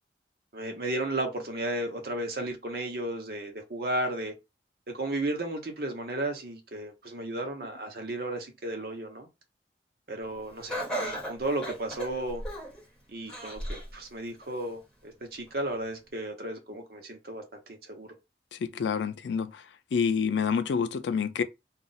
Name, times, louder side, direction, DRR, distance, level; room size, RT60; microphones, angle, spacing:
voice 1, 0.5-4.3 4.9-9.3 10.1-12.4 13.1-17.4 17.7-18.1, right 1 dB, 55° right, 0.8 m, -34 dB
Laughter, 10.7-12.8 13.3-13.9 14.4-14.5 15.5-15.6, right 1 dB, 5° left, 1.0 m, -35 dB
voice 2, 18.5-19.6 19.9-21.4, left 6 dB, 90° left, 0.4 m, -28 dB
2.4 x 2.0 x 3.9 m
head